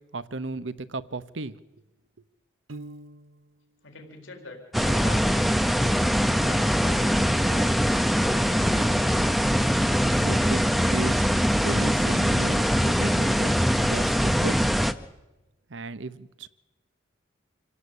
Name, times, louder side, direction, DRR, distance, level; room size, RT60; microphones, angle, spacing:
voice 1, 0.0-1.6 10.2-11.3 11.6-14.6 15.7-16.5, right 2 dB, 65° right, 1.0 m, -35 dB
Piano, 2.7-3.7, right 2 dB, 90° right, 1.3 m, -43 dB
voice 2, 3.8-6.0 6.4-7.6 8.3-9.4, left 2 dB, 75° left, 4.4 m, -42 dB
sound 1, 4.7-14.9, equal, ahead, 0.7 m, -22 dB
27.0 x 17.0 x 8.4 m
head